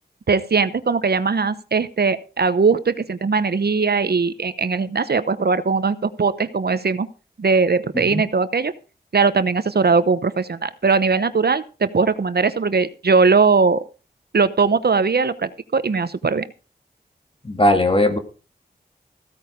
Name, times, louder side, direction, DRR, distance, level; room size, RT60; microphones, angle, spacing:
voice 1, 0.3-7.1 7.4-8.7 9.1-13.9 14.3-16.5, right 4 dB, 70° right, 13 dB, 0.9 m, -20 dB
voice 2, 17.4-18.2, left 1 dB, 30° left, 7 dB, 2.2 m, -18 dB
15.5 x 9.0 x 5.1 m, 0.34 s
wide cardioid pair, 70°, 17 cm